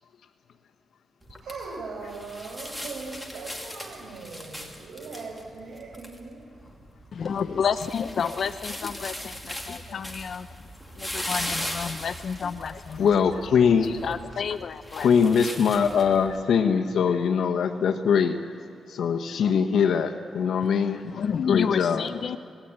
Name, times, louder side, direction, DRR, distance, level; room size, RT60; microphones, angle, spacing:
sound 1, 1.2-16.4, equal, ahead, 2.6 m, -39 dB
voice 1, 1.4-6.5, right 4 dB, 85° right, -3 dB, 4.8 m, -39 dB
voice 2, 7.1-10.7 10.9-13.3 14.0-15.1 20.9-22.4, left 6 dB, 55° left, 10 dB, 0.6 m, -30 dB
voice 3, 13.0-14.0 15.0-18.4 18.9-21.0 21.5-22.0, left 6 dB, 75° left, 6 dB, 1.2 m, -22 dB
26.5 x 19.0 x 8.9 m, 2.6 s
wide cardioid pair, 130°, 0 cm